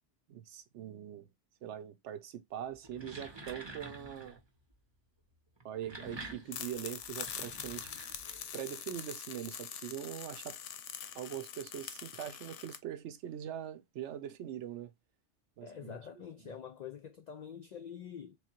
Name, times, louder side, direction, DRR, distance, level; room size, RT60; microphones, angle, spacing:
voice 1, 0.3-1.3 1.6-4.4 5.6-10.6 11.1-14.9 15.6-16.0 16.4-16.5, right 10 dB, 75° right, 0.9 m, -42 dB
sound 1, 2.7-4.4 5.6-8.6, right 2 dB, 30° right, 0.6 m, -48 dB
sound 2, 6.5-12.8, left 9 dB, 90° left, 0.9 m, -44 dB
voice 2, 15.6-18.4, left 8 dB, 65° left, 0.4 m, -46 dB
3.5 x 3.1 x 2.8 m
omnidirectional pair, 1.2 m